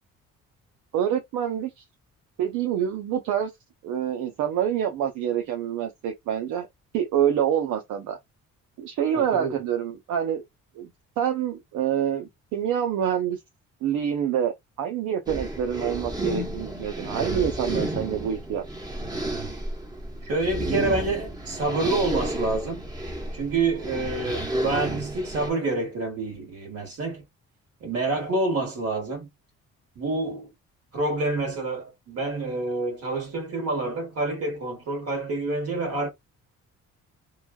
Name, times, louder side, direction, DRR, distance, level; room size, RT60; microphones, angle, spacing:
voice 1, 0.9-1.7 2.4-3.5 3.8-6.7 6.9-8.2 8.8-10.4 10.8-10.9 11.2-13.4 13.8-14.5 14.8-18.6, right 9 dB, 85° right, 0.6 m, -26 dB
voice 2, 9.1-9.5 20.2-22.8 23.3-27.2 27.8-29.3 29.9-30.5 30.9-36.1, right 2 dB, 50° right, 1.5 m, -27 dB
sound 1, 15.3-25.5, right 1 dB, 15° right, 1.0 m, -31 dB
3.0 x 2.3 x 2.2 m
cardioid pair, 90°, 30 cm